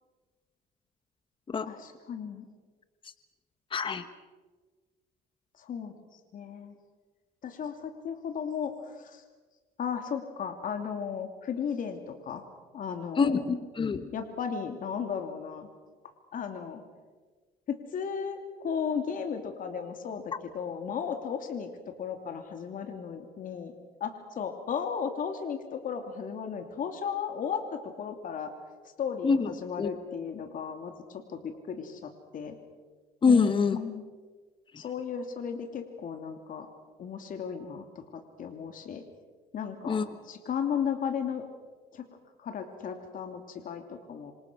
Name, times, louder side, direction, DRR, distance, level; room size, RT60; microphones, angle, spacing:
voice 1, 1.6-2.5 5.6-5.9 6.3-6.7 7.4-9.2 9.8-12.4 12.7-13.4 14.1-15.7 16.3-16.8 17.7-21.7 22.0-23.7 24.0-28.5 29.0-32.6 33.2-34.0 34.8-36.7 37.0-37.8 38.4-39.0 39.5-41.5 41.9-42.0 42.4-44.3, left 7 dB, 55° left, 5 dB, 2.9 m, -35 dB
voice 2, 3.7-4.0 13.2-14.1 29.2-29.5 29.8-29.9 33.2-33.8 39.9-40.1, left 5 dB, 30° left, 11 dB, 1.3 m, -25 dB
27.0 x 26.5 x 6.3 m, 1.4 s
cardioid pair, 110°, 17 cm